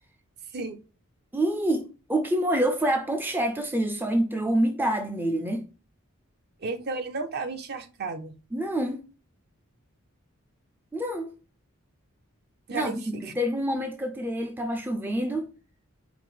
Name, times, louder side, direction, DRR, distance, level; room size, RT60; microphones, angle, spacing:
voice 1, 1.3-5.6 8.5-9.0 10.9-11.3 12.7-15.5, right 1 dB, 10° right, 0.4 m, -27 dB
voice 2, 6.6-8.3 12.7-13.2, right 3 dB, 50° right, 0.6 m, -33 dB
4.7 x 2.0 x 3.9 m
head